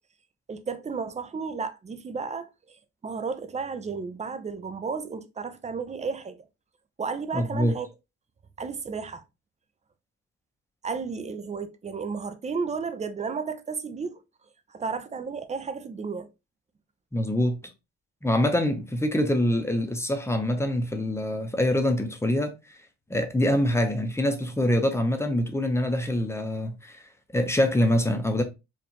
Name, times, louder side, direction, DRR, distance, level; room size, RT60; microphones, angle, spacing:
voice 1, 0.5-6.5 7.0-7.9 8.6-9.2 10.8-14.2 14.7-16.3, right 5 dB, 25° right, 0.5 m, -33 dB
voice 2, 7.3-7.7 17.1-17.6 18.2-22.8 23.1-27.0 27.3-28.4, left 1 dB, 10° left, 0.8 m, -25 dB
4.5 x 2.5 x 2.8 m
cardioid pair, 90°, 30 cm